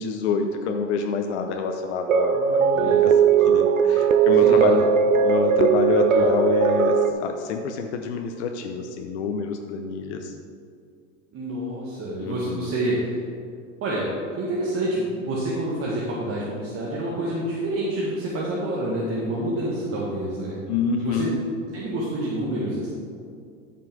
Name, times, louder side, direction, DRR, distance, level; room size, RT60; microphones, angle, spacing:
voice 1, 0.0-4.9 5.2-10.3 12.2-12.7 20.7-21.4, left 5 dB, 60° left, 4 dB, 0.8 m, -27 dB
sound 1, 2.1-7.1, right 7 dB, 85° right, 0.7 m, -18 dB
voice 2, 2.3-3.1 4.4-4.7 6.1-6.2 11.3-13.2 13.8-14.1 14.4-20.6 21.0-21.3 21.7-22.9, right 1 dB, 35° right, -6 dB, 1.8 m, -28 dB
13.5 x 5.7 x 3.7 m, 2.3 s
hypercardioid pair, 90°, 38 cm